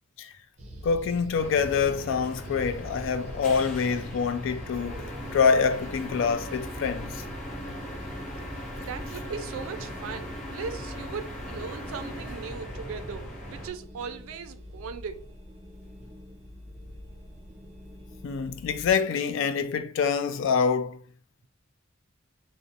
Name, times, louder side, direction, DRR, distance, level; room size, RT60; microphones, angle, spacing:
sound 1, 0.6-18.9, equal, 35° right, 0.6 m, -45 dB
voice 1, 0.8-7.1 18.2-21.0, left 6 dB, 65° left, 0.3 m, -26 dB
sound 2, 1.3-13.7, equal, 40° left, 0.8 m, -39 dB
voice 2, 8.8-15.3, right 5 dB, 80° right, 0.4 m, -38 dB
2.5 x 2.0 x 2.6 m
head